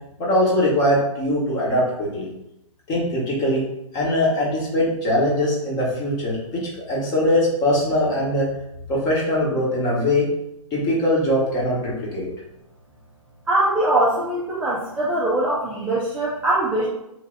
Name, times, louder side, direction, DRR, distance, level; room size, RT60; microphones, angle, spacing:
voice 1, 0.2-2.3 2.9-3.6 3.9-8.5 8.9-10.3 10.7-12.3, left 1 dB, 20° left, -4 dB, 1.2 m, -21 dB
voice 2, 13.5-16.9, right 1 dB, 5° right, -8 dB, 0.5 m, -22 dB
3.3 x 2.5 x 3.8 m, 0.86 s
hypercardioid pair, 135°, 18 cm